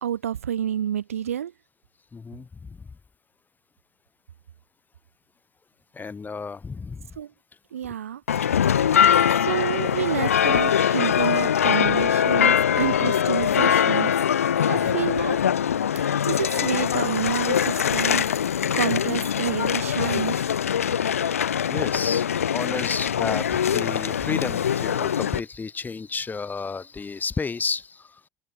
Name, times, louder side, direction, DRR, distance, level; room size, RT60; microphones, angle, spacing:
voice 1, 0.0-1.5 7.2-7.3 7.7-8.6 9.4-14.1 14.7-15.4 15.9-18.3 18.7-20.5, right 9 dB, 80° right, 0.7 m, -29 dB
voice 2, 2.1-2.9 5.9-7.1 14.7-15.0 21.7-28.2, left 4 dB, 25° left, 1.0 m, -32 dB
sound 1, 8.3-25.4, left 9 dB, 80° left, 0.5 m, -22 dB
figure-of-eight pair, 55°, 8 cm